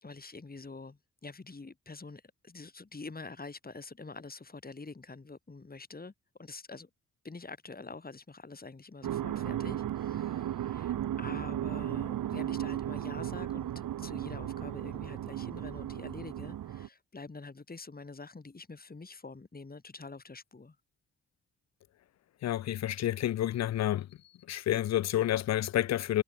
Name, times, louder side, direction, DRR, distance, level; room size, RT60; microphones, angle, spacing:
voice 1, 0.0-6.1 6.4-6.9 7.2-20.8, left 3 dB, 30° left, 3.2 m, -46 dB
sound 1, 9.0-16.9, right 11 dB, 75° right, 1.6 m, -35 dB
voice 2, 22.4-24.1 24.5-26.2, left 12 dB, 55° left, 0.5 m, -29 dB
cardioid pair, 60°, 32 cm